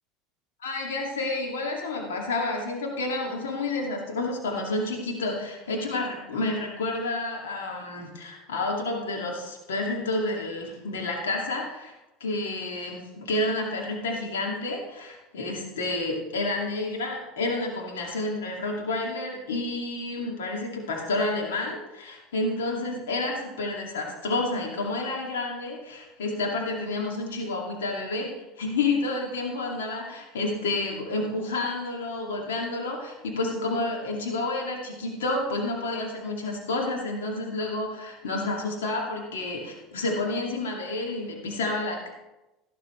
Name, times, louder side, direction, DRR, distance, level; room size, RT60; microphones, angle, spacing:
voice 1, 0.6-11.9 12.2-28.3 28.6-42.1, left 2 dB, 85° left, 0 dB, 2.3 m, -30 dB
12.5 x 12.5 x 3.2 m, 0.99 s
hypercardioid pair, 85°, 0 cm